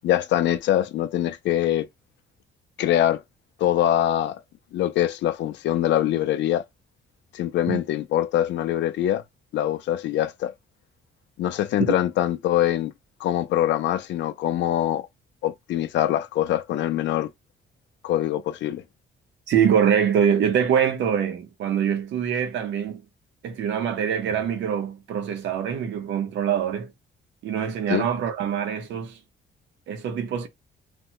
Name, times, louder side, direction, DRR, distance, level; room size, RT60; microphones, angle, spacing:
voice 1, 0.0-1.9 2.8-3.2 3.6-4.4 4.7-6.6 7.3-9.2 9.5-10.5 11.4-12.9 13.2-15.1 15.4-17.3 18.0-18.8 27.9-28.1, left 12 dB, 70° left, 0.4 m, -23 dB
voice 2, 19.5-23.0 23.4-26.9 27.4-29.2 29.9-30.5, right 8 dB, 75° right, 0.9 m, -24 dB
3.2 x 2.1 x 2.8 m
cardioid pair, 140°, 19 cm